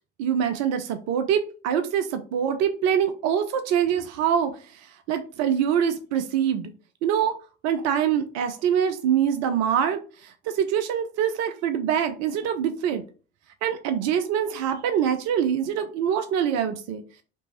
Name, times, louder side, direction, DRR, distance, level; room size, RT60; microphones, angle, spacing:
voice 1, 0.2-6.7 7.0-7.4 7.6-13.0 13.6-17.2, right 8 dB, 50° right, 9 dB, 0.6 m, -24 dB
5.1 x 3.1 x 2.9 m, 0.37 s
figure-of-eight pair, 55°, 34 cm